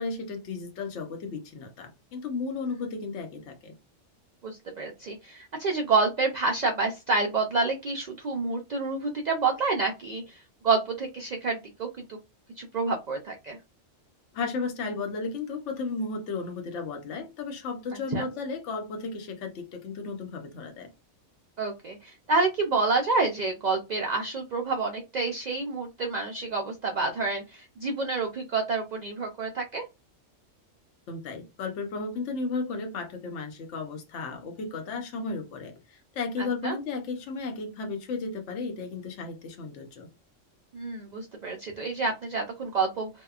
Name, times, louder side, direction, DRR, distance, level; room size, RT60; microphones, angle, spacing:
voice 1, 0.0-3.8 14.3-20.9 31.1-40.1, left 4 dB, 70° left, 1.0 m, -34 dB
voice 2, 4.4-10.4 10.6-12.2 12.6-13.6 18.1-18.3 21.6-29.8 36.6-36.8 40.7-43.1, right 3 dB, 80° right, 0.3 m, -28 dB
2.7 x 2.1 x 2.3 m
omnidirectional pair, 1.3 m